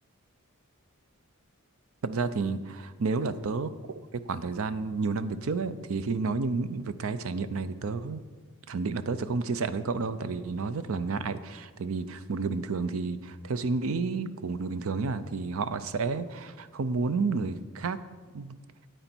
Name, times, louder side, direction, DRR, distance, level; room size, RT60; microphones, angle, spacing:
voice 1, 2.0-4.0 4.3-8.2 8.7-18.0 18.3-18.6, right 4 dB, 70° right, 13 dB, 0.5 m, -31 dB
9.2 x 8.9 x 4.4 m, 1.4 s
head